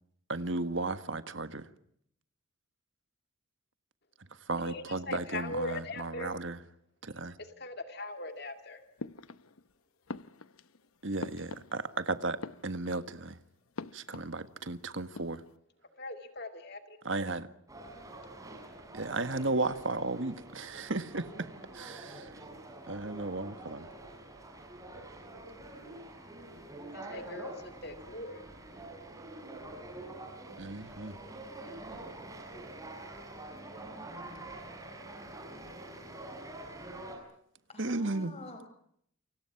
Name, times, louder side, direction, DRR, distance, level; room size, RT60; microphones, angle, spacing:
voice 1, 0.3-1.6 4.5-6.6 7.0-7.4 11.0-13.4 13.9-15.4 17.1-17.5 18.9-21.5 21.7-22.3 22.9-23.9 30.6-31.1 37.8-38.3, right 2 dB, 60° right, 1.6 m, -34 dB
voice 2, 4.6-6.3 7.4-8.8 16.0-17.0 17.2-17.4 26.9-28.4, left 2 dB, 50° left, 2.4 m, -40 dB
sound 1, 9.0-9.7 10.1-12.0 12.3-13.2 13.8-14.7 15.0-15.6, left 3 dB, 80° left, 1.0 m, -44 dB
sound 2, 17.7-37.2, right 2 dB, 15° right, 7.2 m, -46 dB
voice 3, 22.0-22.3 37.7-38.7, left 2 dB, 30° left, 5.0 m, -48 dB
29.0 x 25.5 x 5.9 m
head